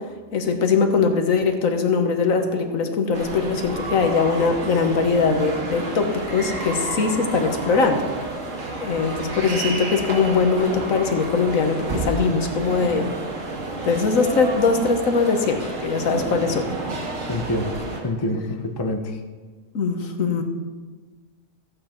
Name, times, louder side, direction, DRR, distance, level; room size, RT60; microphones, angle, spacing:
voice 1, 0.3-8.1 8.7-13.1 13.8-16.7 19.7-20.4, left 4 dB, 85° left, 5 dB, 1.6 m, -21 dB
sound 1, 3.1-18.0, right 2 dB, 75° right, 2.1 m, -30 dB
voice 2, 17.3-17.8 18.0-19.2, left 1 dB, 20° left, 5 dB, 0.7 m, -26 dB
14.5 x 8.5 x 4.5 m, 1.4 s
omnidirectional pair, 1.4 m